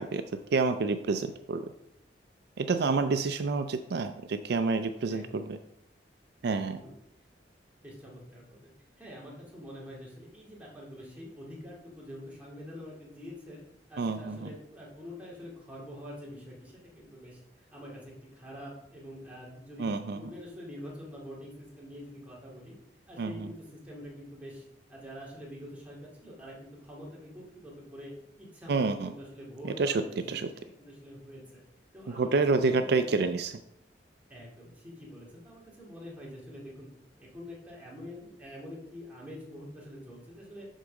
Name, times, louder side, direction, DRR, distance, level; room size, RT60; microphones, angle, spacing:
voice 1, 0.0-1.7 2.6-5.6 6.4-6.8 14.0-14.5 19.8-20.2 23.2-23.5 28.7-29.1 29.6-30.0 30.3-30.5 32.1-33.5, right 4 dB, 65° right, 9 dB, 0.4 m, -28 dB
voice 2, 6.6-6.9 7.8-13.6 13.9-17.4 17.7-22.7 23.1-24.6 24.9-28.1 28.4-30.3 30.8-31.6 31.9-33.3 34.3-36.9 37.2-40.7, equal, 10° right, -5 dB, 2.5 m, -46 dB
6.4 x 4.7 x 6.3 m, 0.81 s
head